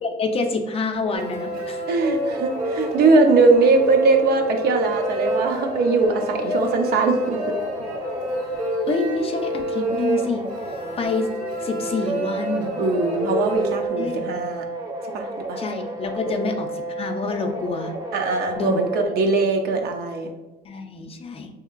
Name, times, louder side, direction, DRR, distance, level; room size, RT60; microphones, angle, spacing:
voice 1, 0.0-1.8 8.8-10.4 11.0-11.3 11.6-12.7 14.0-14.2 15.6-17.9 18.6-18.8 20.6-21.5, left 4 dB, 35° left, 5 dB, 0.4 m, -27 dB
sound 1, 1.0-19.1, right 1 dB, 25° right, 0.6 m, -32 dB
sound 2, 1.1-13.9, equal, 50° right, 0.9 m, -29 dB
voice 2, 1.9-7.4 12.8-14.6 15.1-15.6 16.3-16.5 18.1-20.3, right 3 dB, 65° right, 4 dB, 0.6 m, -20 dB
3.6 x 2.8 x 2.4 m, 1.0 s
cardioid pair, 110°, 17 cm